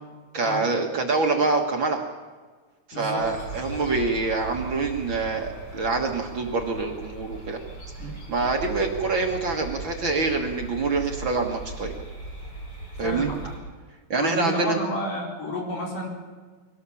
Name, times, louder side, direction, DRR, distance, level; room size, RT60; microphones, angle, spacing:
voice 1, 0.3-2.0 2.9-7.6 8.3-11.9 13.0-13.3 14.1-14.8, right 3 dB, 45° right, 2 dB, 2.0 m, -25 dB
voice 2, 2.9-3.3 8.0-8.2 13.0-13.5 14.2-16.1, equal, 80° left, -1 dB, 6.2 m, -31 dB
sound 1, 3.2-13.6, right 2 dB, 30° left, 5.6 m, -38 dB
22.5 x 17.5 x 7.1 m, 1.4 s
omnidirectional pair, 3.6 m